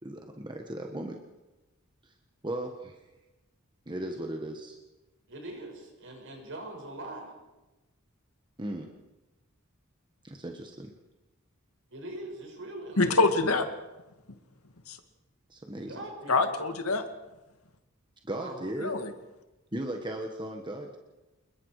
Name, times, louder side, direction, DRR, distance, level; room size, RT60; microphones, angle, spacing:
voice 1, 0.0-1.2 2.0-2.1 2.4-3.0 3.9-4.8 8.6-8.9 10.2-10.9 15.5-16.0 18.2-18.9 19.7-21.0, right 1 dB, 20° right, 3 dB, 1.5 m, -36 dB
voice 2, 5.3-7.3 11.9-13.2 15.9-16.5 18.3-18.7, right 1 dB, 60° right, 1 dB, 6.7 m, -42 dB
voice 3, 13.0-13.7 14.9-15.0 16.3-17.0 18.8-19.1, left 3 dB, 90° left, 7 dB, 2.0 m, -25 dB
28.0 x 21.5 x 5.0 m, 1.1 s
head